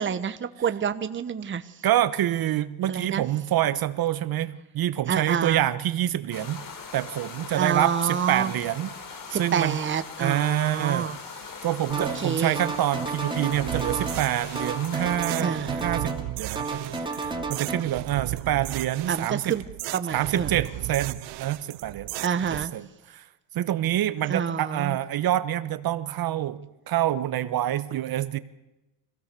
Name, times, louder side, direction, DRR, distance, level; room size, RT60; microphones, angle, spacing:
voice 1, 0.0-1.7 2.9-3.3 5.1-5.6 7.5-8.5 9.3-11.2 11.6-11.7 12.0-12.6 15.4-15.8 19.1-19.6 19.9-20.5 22.2-22.7 24.3-25.0, right 7 dB, 25° right, 10 dB, 1.1 m, -28 dB
voice 2, 1.8-6.6 6.9-8.9 9.4-9.8 10.2-11.1 11.6-19.6 20.1-22.1 22.7-23.2 23.5-28.4, right 12 dB, 55° right, 13 dB, 1.1 m, -26 dB
sound 1, 6.3-15.2, left 5 dB, 50° left, 3.3 m, -40 dB
sound 2, 11.9-12.3 12.5-14.3 14.5-16.3 16.6-17.8, right 3 dB, 10° right, 2.6 m, -32 dB
sound 3, 13.5-22.7, right 19 dB, 80° right, 0.9 m, -36 dB
25.5 x 16.5 x 6.9 m, 0.99 s
cardioid pair, 105°, 43 cm